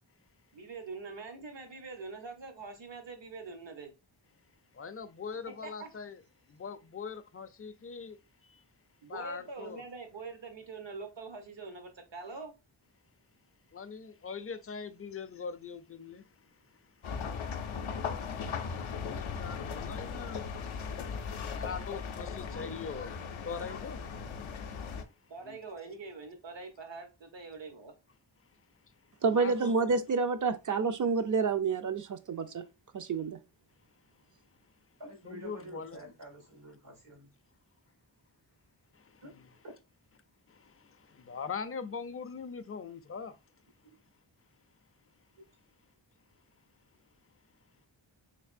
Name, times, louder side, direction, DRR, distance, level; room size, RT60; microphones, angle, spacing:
voice 1, 0.5-3.9 5.5-5.9 9.0-12.5 25.3-27.9, right 4 dB, 65° right, 0.9 m, -44 dB
voice 2, 4.7-6.2 6.5-8.6 9.1-9.8 13.7-24.1 24.5-24.6 25.1-25.6 28.8-28.9 29.3-29.9 35.2-36.1 38.9-39.5 40.5-43.4, left 5 dB, 30° left, 0.4 m, -43 dB
sound 1, 17.0-25.0, left 6 dB, 85° left, 0.5 m, -38 dB
voice 3, 29.2-32.6 32.9-33.4, right 4 dB, 40° right, 0.4 m, -29 dB
voice 4, 35.0-37.3 39.2-39.3, right 1 dB, 80° right, 1.9 m, -48 dB
3.3 x 3.2 x 2.4 m
wide cardioid pair, 40°, 47 cm